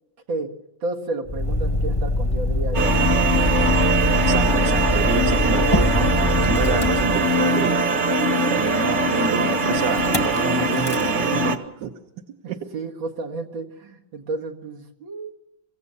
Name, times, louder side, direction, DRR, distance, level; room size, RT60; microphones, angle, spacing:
voice 1, 0.8-3.1 12.4-15.3, right 3 dB, 80° right, 1 dB, 2.7 m, -31 dB
Motor vehicle (road), 1.3-7.7 9.9-10.4 10.7-11.1, left 1 dB, 15° left, 1.0 m, -23 dB
sound 1, 2.7-11.6, right 2 dB, 30° right, 1.2 m, -21 dB
voice 2, 4.3-7.8 8.5-11.9 12.5-12.6, right 7 dB, 65° right, 5 dB, 1.8 m, -29 dB
25.0 x 16.5 x 7.0 m, 0.90 s
omnidirectional pair, 2.1 m